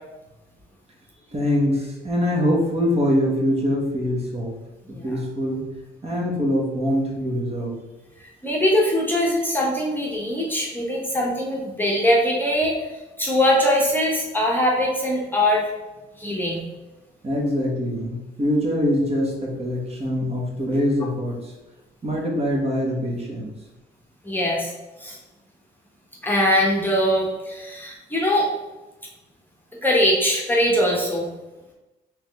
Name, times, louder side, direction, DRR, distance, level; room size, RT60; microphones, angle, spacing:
voice 1, 1.3-4.5 4.9-5.6 6.0-7.7 17.2-21.5 22.0-23.5, equal, 30° right, -2 dB, 1.2 m, -23 dB
voice 2, 8.4-12.7 13.2-15.7 16.2-16.6 24.2-24.7 25.0-25.2 26.2-28.5 29.8-31.3, equal, 10° left, -3 dB, 0.9 m, -21 dB
3.4 x 3.2 x 3.3 m, 1.1 s
cardioid pair, 90°, 20 cm